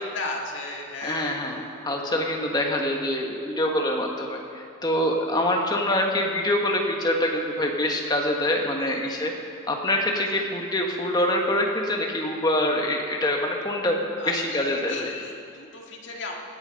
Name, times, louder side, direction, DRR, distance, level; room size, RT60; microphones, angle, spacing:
voice 1, 0.1-1.5 8.8-9.2 14.2-16.3, left 3 dB, 65° left, -1 dB, 2.0 m, -35 dB
voice 2, 1.0-1.6 1.8-9.3 9.7-14.0 14.2-15.1, left 1 dB, 20° left, 1 dB, 1.4 m, -25 dB
17.0 x 10.5 x 5.2 m, 2.5 s
head